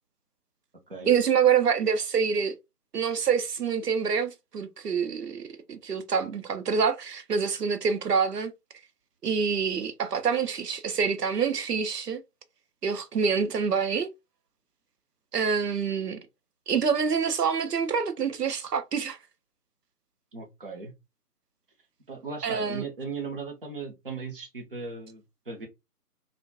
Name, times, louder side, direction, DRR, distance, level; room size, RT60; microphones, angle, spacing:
voice 1, 1.1-2.6 2.9-5.4 5.7-8.5 9.2-12.2 12.8-14.1 15.3-16.2 16.7-19.2 22.4-22.8, right 6 dB, 85° right, 0.6 m, -26 dB
voice 2, 20.3-20.9 22.1-25.7, right 4 dB, 35° right, 0.5 m, -37 dB
2.5 x 2.1 x 2.6 m
figure-of-eight pair, 150°, 47 cm